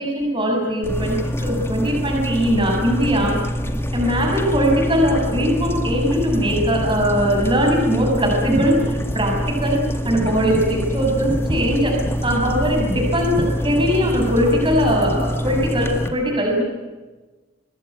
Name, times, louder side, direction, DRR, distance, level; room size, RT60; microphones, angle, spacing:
voice 1, 0.0-9.3 9.6-9.8 10.0-11.9 12.2-16.6, equal, 25° right, 0 dB, 7.0 m, -20 dB
sound 1, 0.8-16.1, equal, 10° left, 1.9 m, -25 dB
25.5 x 20.5 x 9.4 m, 1.2 s
head